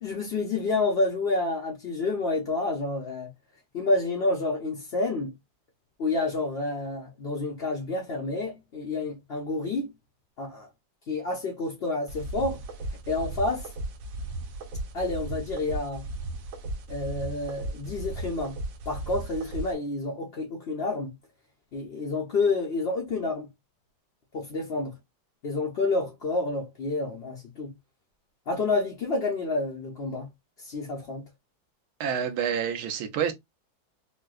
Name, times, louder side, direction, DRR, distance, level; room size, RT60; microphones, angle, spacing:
voice 1, 0.0-3.3 3.7-5.3 6.0-9.9 10.4-10.7 11.1-12.6 13.1-13.7 14.9-16.1 16.9-18.5 18.9-21.1 21.7-23.5 24.3-24.9 25.4-27.7 28.5-30.3 30.6-31.2, left 3 dB, 65° left, 0.6 m, -29 dB
sound 1, 12.1-19.7, right 2 dB, 85° right, 1.4 m, -36 dB
voice 2, 32.0-33.3, right 8 dB, 65° right, 1.0 m, -28 dB
4.4 x 2.1 x 2.3 m
omnidirectional pair, 2.0 m